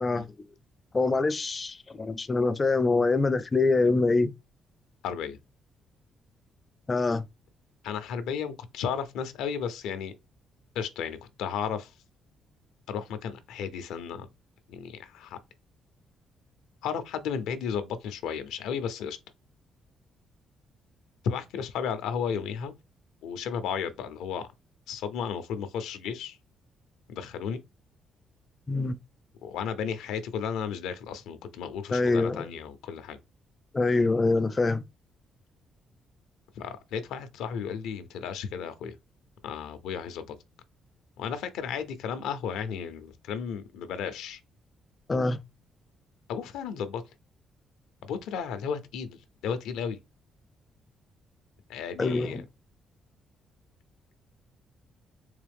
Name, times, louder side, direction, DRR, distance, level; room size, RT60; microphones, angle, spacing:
voice 1, 0.9-4.3 6.9-7.2 28.7-29.0 31.9-32.5 33.7-34.8 45.1-45.4 52.0-52.4, left 3 dB, 30° left, 0.4 m, -25 dB
voice 2, 5.0-5.4 7.8-10.1 10.7-11.9 12.9-14.3 14.7-15.4 16.8-19.2 21.2-22.7 23.2-24.5 24.9-26.4 27.1-27.6 29.4-33.2 36.5-39.0 39.4-40.3 41.2-44.4 46.3-47.0 48.0-50.0 51.7-52.4, left 7 dB, 90° left, 0.6 m, -34 dB
3.6 x 3.1 x 3.4 m
cardioid pair, 90°, 0 cm